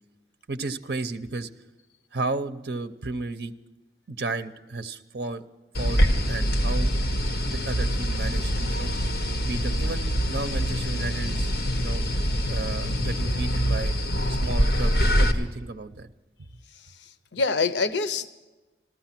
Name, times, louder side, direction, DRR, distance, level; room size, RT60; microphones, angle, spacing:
voice 1, 0.5-1.5 2.1-3.5 4.1-5.4 5.8-6.9 7.4-8.9 9.4-13.9 14.3-16.1 16.4-16.5, right 3 dB, 60° right, 8 dB, 0.7 m, -33 dB
sound 1, 5.7-15.3, equal, 60° left, 1.4 m, -24 dB
voice 2, 16.7-18.3, left 4 dB, 90° left, 13 dB, 0.7 m, -27 dB
14.0 x 14.0 x 5.9 m, 1.1 s
head